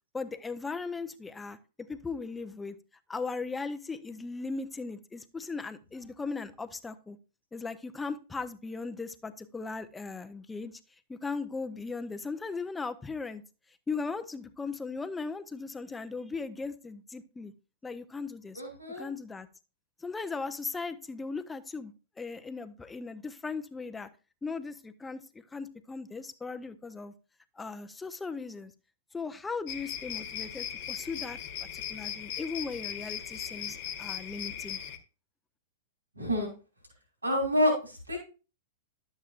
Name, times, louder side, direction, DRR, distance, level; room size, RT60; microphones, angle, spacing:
voice 1, 0.1-1.6 1.9-2.8 3.1-7.2 7.5-10.7 11.1-13.4 13.9-17.5 17.8-18.6 19.0-19.5 20.0-24.1 24.4-25.2 25.5-27.1 27.6-28.7 29.1-31.4 31.7-34.8, left 4 dB, 10° left, 10 dB, 0.6 m, -38 dB
voice 2, 18.5-19.1 36.1-36.5 37.2-38.2, equal, 90° right, 1 dB, 3.2 m, -28 dB
sound 1, 29.7-35.0, left 9 dB, 50° left, 1.2 m, -38 dB
11.0 x 7.4 x 2.5 m, 0.34 s
figure-of-eight pair, 100°, 0 cm